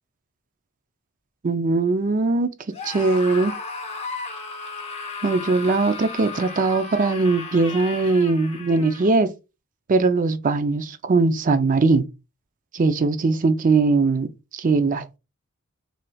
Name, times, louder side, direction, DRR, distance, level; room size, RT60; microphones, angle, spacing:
voice 1, 1.4-2.5 2.8-3.5 5.2-9.3 9.9-12.0 12.7-14.3 14.5-15.2, right 3 dB, 40° right, 0.4 m, -20 dB
Screaming, 2.7-9.2, left 4 dB, 30° left, 0.7 m, -35 dB
4.1 x 3.2 x 2.3 m
head